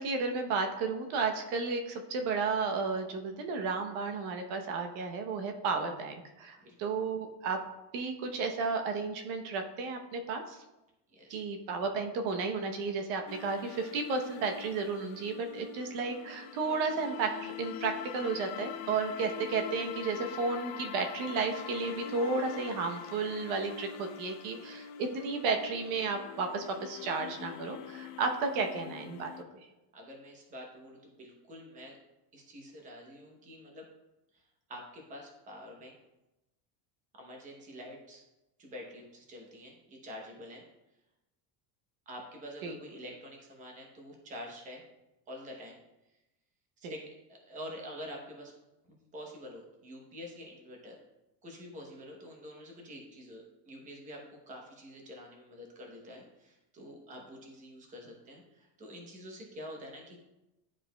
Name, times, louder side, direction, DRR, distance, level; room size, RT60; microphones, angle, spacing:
voice 1, 0.0-7.6 7.9-10.6 11.3-29.3 42.6-42.7 46.8-46.9, right 4 dB, 70° right, 5 dB, 0.9 m, -33 dB
voice 2, 11.1-11.4 29.9-32.0 32.3-33.8 34.3-34.4 34.7-36.0 37.1-38.2 38.6-40.6 42.1-44.8 45.3-45.8 46.8-48.5 48.9-51.0 51.4-60.2, equal, 15° right, 0 dB, 0.8 m, -47 dB
sound 1, 13.3-29.4, left 9 dB, 75° left, 0.6 m, -44 dB
11.0 x 4.9 x 2.2 m, 0.98 s
cardioid pair, 180°, 43 cm